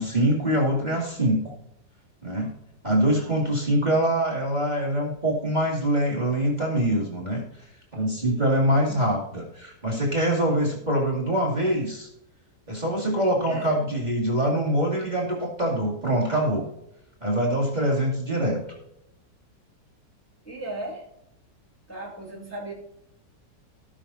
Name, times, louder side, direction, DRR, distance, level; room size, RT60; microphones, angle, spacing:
voice 1, 0.0-1.5 2.2-2.5 2.8-7.4 7.9-12.1 12.7-16.7 17.2-18.6, right 1 dB, 25° right, -2 dB, 2.3 m, -24 dB
voice 2, 13.5-13.8 20.4-21.1 21.9-22.7, right 1 dB, 10° left, -4 dB, 2.4 m, -36 dB
17.5 x 6.5 x 2.8 m, 0.79 s
omnidirectional pair, 1.9 m